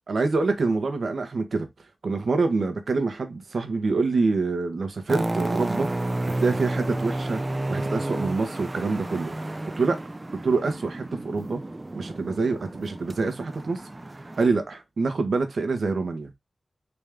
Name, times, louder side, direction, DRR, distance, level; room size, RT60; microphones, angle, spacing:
voice 1, 0.1-1.7 2.0-5.9 6.4-7.4 7.7-9.5 9.8-10.0 10.4-11.6 11.9-13.8 14.4-16.3, right 3 dB, 80° right, 1.2 m, -26 dB
sound 1, 5.1-14.5, right 1 dB, 25° right, 0.4 m, -31 dB
4.2 x 3.5 x 3.7 m
wide cardioid pair, 105°, 0 cm